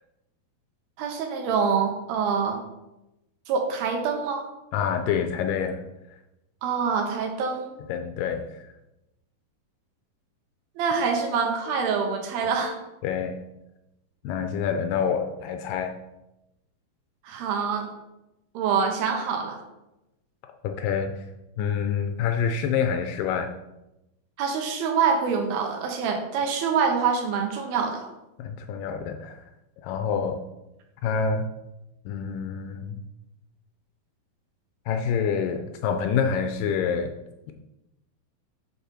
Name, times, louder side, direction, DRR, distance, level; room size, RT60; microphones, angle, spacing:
voice 1, 1.0-2.6 3.5-4.5 6.6-7.7 10.8-12.8 17.2-17.9 18.5-19.6 24.4-28.1, right 6 dB, 75° right, 3 dB, 2.7 m, -25 dB
voice 2, 4.7-5.8 7.9-8.7 13.0-13.4 14.2-15.9 20.6-21.2 21.6-23.5 28.4-29.4 29.8-30.4 31.0-31.5 32.1-33.0 34.9-37.2, left 6 dB, 85° left, 5 dB, 1.9 m, -27 dB
8.4 x 4.1 x 5.7 m, 0.95 s
omnidirectional pair, 4.5 m